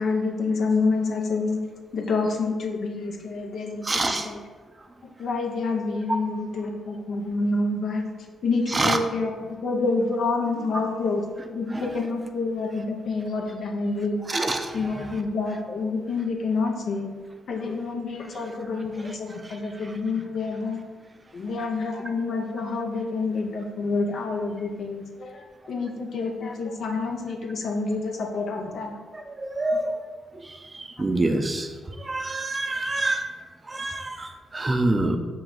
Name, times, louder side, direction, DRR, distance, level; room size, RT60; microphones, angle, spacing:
voice 1, 0.0-1.6 1.9-4.4 5.2-8.0 8.4-11.2 11.5-14.2 14.7-17.1 17.5-20.8 21.3-28.9, left 3 dB, 60° left, 2 dB, 0.6 m, -28 dB
voice 2, 3.8-4.3 6.1-6.2 8.7-9.0 11.7-12.0 14.3-15.2 19.0-19.2 19.4-20.0 29.1-29.9 30.4-31.7 32.0-33.3 33.7-35.2, right 2 dB, 30° right, 5 dB, 0.5 m, -27 dB
5.8 x 2.2 x 3.8 m, 1.5 s
hypercardioid pair, 45°, 0 cm